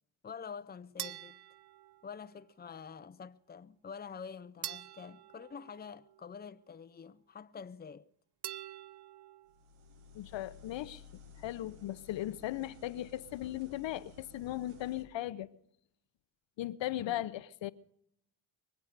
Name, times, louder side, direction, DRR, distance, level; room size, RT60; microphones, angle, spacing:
voice 1, 0.2-1.4 2.0-8.1 17.0-17.2, left 6 dB, 20° left, 0.7 m, -47 dB
sound 1, 1.0-2.5 4.6-6.5 8.4-9.6, right 12 dB, 55° right, 0.7 m, -46 dB
sound 2, 9.4-15.0, left 4 dB, 85° right, 1.9 m, -56 dB
voice 2, 10.1-11.0 11.4-15.5 16.6-17.7, left 14 dB, 70° left, 0.9 m, -37 dB
24.0 x 8.2 x 6.7 m
supercardioid pair, 50°, 47 cm